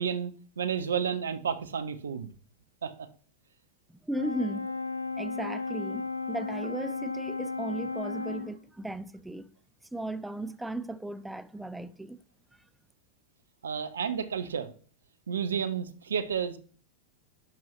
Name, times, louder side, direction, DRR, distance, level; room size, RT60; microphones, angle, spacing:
voice 1, 0.0-2.3 2.8-2.9 13.6-14.7 15.3-16.6, right 7 dB, 70° right, 0.7 m, -31 dB
voice 2, 3.9-4.7 5.2-9.5 9.9-12.2, right 1 dB, 5° right, 0.4 m, -36 dB
Brass instrument, 4.2-8.6, left 4 dB, 85° left, 0.5 m, -34 dB
11.0 x 4.6 x 3.1 m
figure-of-eight pair, 90°, 0 cm